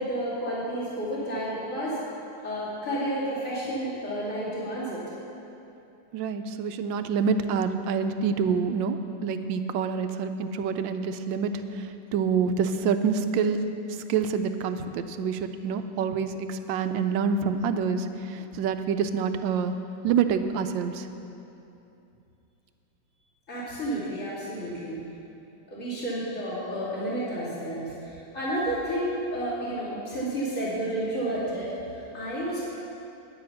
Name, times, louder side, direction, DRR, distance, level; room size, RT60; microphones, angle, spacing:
voice 1, 0.0-2.0 2.4-5.0 23.5-25.0 25.7-32.7, right 1 dB, 40° left, -9 dB, 3.5 m, -31 dB
voice 2, 6.1-9.0 9.2-19.7 20.0-21.1, right 6 dB, 90° right, 9 dB, 1.3 m, -27 dB
10.5 x 10.0 x 5.7 m, 2.8 s
omnidirectional pair, 2.0 m